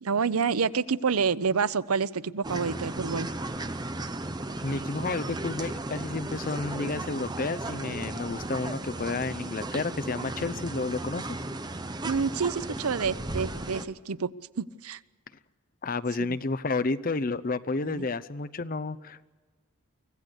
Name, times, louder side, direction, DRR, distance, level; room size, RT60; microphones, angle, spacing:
voice 1, 0.0-3.3 12.0-14.3 14.6-15.0 16.2-16.4 17.8-18.1, right 5 dB, 90° right, 16 dB, 0.7 m, -28 dB
sound 1, 2.4-13.9, right 2 dB, 20° right, 0.9 m, -35 dB
voice 2, 4.6-11.4 15.8-19.3, left 3 dB, 40° left, 13 dB, 0.7 m, -31 dB
24.5 x 16.0 x 8.1 m, 1.3 s
head